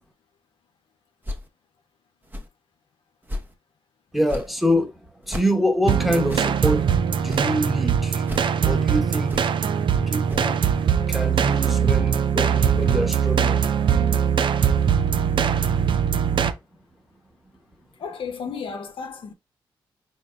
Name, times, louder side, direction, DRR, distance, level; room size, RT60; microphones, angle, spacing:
sound 1, 1.2-1.5 2.2-2.5 3.2-3.5 4.2-4.5 5.2-5.5 6.2-6.5 7.2-7.5 8.2-8.5 9.2-9.5 10.2-10.5, left 1 dB, 20° right, 0.8 m, -34 dB
voice 1, 4.1-4.9 5.3-6.8 7.2-8.3 8.6-9.4 10.1-10.6 11.1-13.6, equal, ahead, 1.0 m, -25 dB
sound 2, 5.8-16.5, right 7 dB, 60° right, 0.4 m, -21 dB
voice 2, 18.0-19.3, left 6 dB, 65° left, 0.6 m, -33 dB
4.0 x 3.7 x 2.2 m
supercardioid pair, 50°, 9 cm